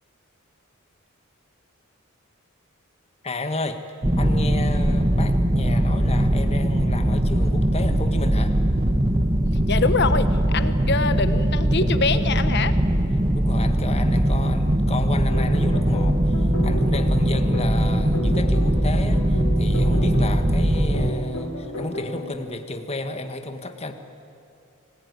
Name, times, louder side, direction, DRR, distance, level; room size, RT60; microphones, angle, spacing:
voice 1, 3.2-3.8 4.2-8.6 13.3-23.9, left 2 dB, 30° left, 7 dB, 1.6 m, -32 dB
sound 1, 4.0-21.1, right 1 dB, 25° right, 1.2 m, -21 dB
voice 2, 9.7-12.7, left 4 dB, 55° left, 11 dB, 1.2 m, -24 dB
sound 2, 15.3-22.4, equal, 80° left, 4.5 m, -34 dB
26.5 x 20.0 x 9.7 m, 2.5 s
head